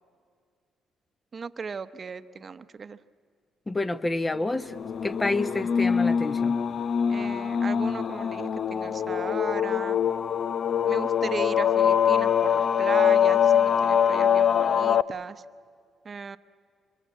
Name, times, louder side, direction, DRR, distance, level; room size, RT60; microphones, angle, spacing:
voice 1, 1.3-3.0 7.1-10.0 10.9-15.4 16.0-16.4, right 5 dB, 40° right, 12 dB, 0.9 m, -36 dB
voice 2, 3.7-4.8 5.0-6.6, left 2 dB, 20° left, 12 dB, 1.0 m, -28 dB
sound 1, 4.7-15.0, left 8 dB, 50° left, 0.6 m, -23 dB
26.0 x 22.5 x 8.4 m, 2.2 s
cardioid pair, 90°, 0 cm